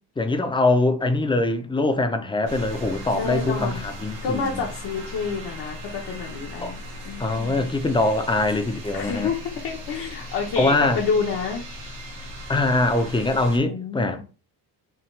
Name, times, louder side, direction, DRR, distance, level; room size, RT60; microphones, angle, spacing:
voice 1, 0.2-4.6 6.6-6.7 7.2-9.3 10.6-11.0 12.5-14.2, left 2 dB, 15° left, 0.4 m, -23 dB
sound 1, 2.5-13.6, equal, 85° right, 1.8 m, -38 dB
voice 2, 3.1-3.9 4.2-6.8 7.0-7.6 8.9-11.7 13.6-14.2, left 5 dB, 65° left, 0.9 m, -29 dB
5.7 x 2.3 x 3.2 m
cardioid pair, 135°, 41 cm